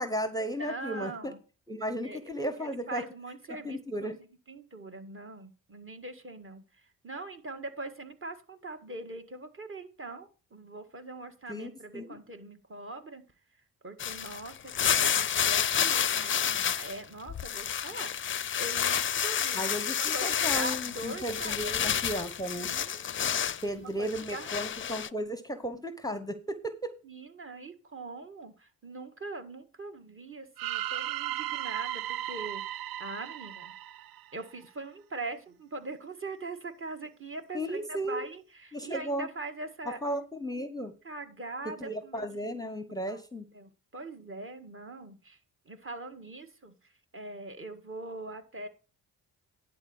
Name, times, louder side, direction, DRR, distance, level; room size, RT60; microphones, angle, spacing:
voice 1, 0.0-1.3 1.7-3.0 3.5-4.2 11.5-12.1 19.5-22.7 23.6-27.0 37.5-38.3 38.7-39.3 39.9-40.9 41.6-43.5, equal, 10° left, 11 dB, 0.9 m, -35 dB
voice 2, 0.6-1.4 2.0-2.2 2.5-4.2 4.5-6.6 7.0-13.2 13.8-14.7 15.0-21.9 22.6-24.5 27.0-32.6 33.0-33.7 34.3-40.0 41.0-42.5 43.1-43.2 43.5-45.4 45.6-46.7 47.1-48.7, right 2 dB, 30° right, 6 dB, 1.8 m, -42 dB
sound 1, 14.0-17.0 17.3-23.6 24.1-25.1, left 9 dB, 30° left, 0.5 m, -29 dB
sound 2, 30.6-34.6, right 13 dB, 65° right, 0.5 m, -36 dB
10.5 x 4.2 x 7.0 m, 0.34 s
supercardioid pair, 65°, 39 cm